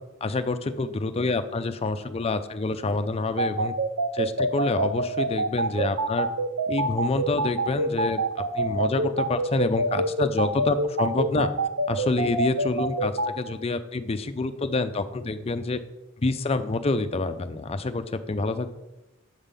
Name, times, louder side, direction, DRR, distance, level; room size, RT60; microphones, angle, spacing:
voice 1, 0.2-3.7 4.1-6.3 6.7-11.5 11.9-15.8 16.2-18.7, left 3 dB, 30° left, 9 dB, 0.5 m, -27 dB
sound 1, 3.4-13.3, right 2 dB, 90° right, 0.7 m, -25 dB
8.0 x 3.7 x 6.7 m, 0.98 s
head